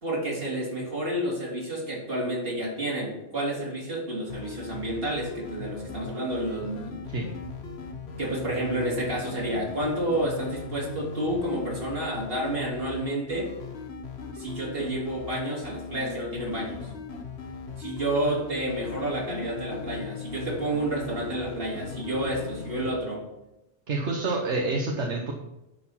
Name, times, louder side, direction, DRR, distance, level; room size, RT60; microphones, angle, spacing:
voice 1, 0.0-7.0 8.2-13.5 14.3-16.8 17.8-23.2, right 1 dB, 55° right, -3 dB, 3.1 m, -30 dB
sound 1, 4.3-22.9, left 5 dB, 65° left, 1.2 m, -39 dB
voice 2, 23.9-25.3, right 3 dB, 75° right, 0 dB, 1.4 m, -28 dB
11.0 x 4.8 x 5.6 m, 0.91 s
omnidirectional pair, 1.2 m